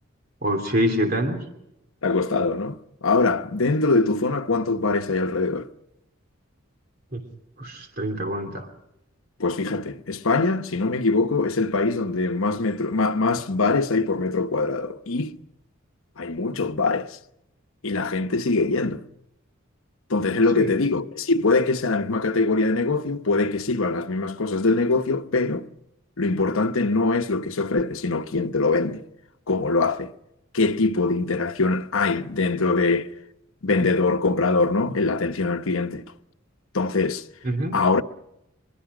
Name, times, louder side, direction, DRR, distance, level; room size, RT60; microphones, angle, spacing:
voice 1, 0.4-1.4 7.1-7.2 7.6-8.7 20.5-20.7 37.4-37.8, equal, 45° right, 3.0 m, -25 dB
voice 2, 2.0-5.7 9.4-15.4 16.2-17.2 17.8-19.0 20.1-25.7 26.2-29.0 29.5-30.1 30.5-33.1 33.6-36.0 36.7-37.3 37.7-38.0, left 3 dB, 75° left, 1.0 m, -23 dB
23.5 x 22.5 x 5.0 m
head